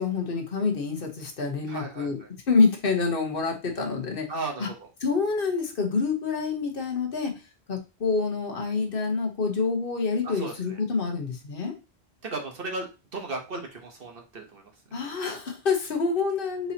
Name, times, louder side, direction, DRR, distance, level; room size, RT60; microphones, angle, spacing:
voice 1, 0.0-4.3 4.6-4.7 5.0-7.4 7.7-11.7 14.9-16.7, left 4 dB, 55° left, 3 dB, 1.2 m, -27 dB
voice 2, 1.7-2.1 4.3-4.7 10.2-10.8 12.2-14.7, right 3 dB, 60° right, 2 dB, 1.2 m, -35 dB
4.6 x 4.0 x 2.8 m, 0.28 s
omnidirectional pair, 1.1 m